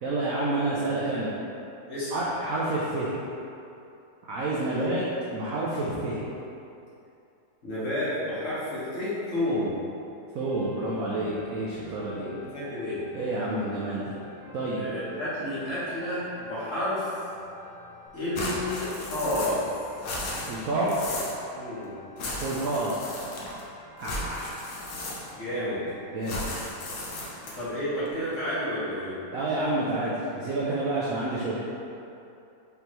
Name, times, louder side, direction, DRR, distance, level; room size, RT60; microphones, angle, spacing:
voice 1, 0.0-1.3 2.1-3.1 4.2-6.2 10.3-12.3 13.1-14.2 14.5-14.8 20.5-21.1 22.4-23.2 24.0-24.6 26.1-26.4 29.3-31.6, right 2 dB, 80° right, -6 dB, 0.7 m, -29 dB
voice 2, 1.9-2.2 4.7-4.9 7.6-9.7 12.2-13.0 14.7-17.1 18.1-19.6 21.5-21.9 25.3-25.8 27.6-29.2, left 1 dB, 40° left, -12 dB, 1.6 m, -31 dB
sound 1, 10.4-26.4, left 3 dB, 25° right, 1.4 m, -49 dB
sound 2, 18.3-19.7 19.9-21.4 22.2-23.6 24.0-25.5 26.2-27.7, left 1 dB, 60° left, 0.9 m, -35 dB
5.1 x 3.4 x 3.0 m, 2.7 s
omnidirectional pair, 2.2 m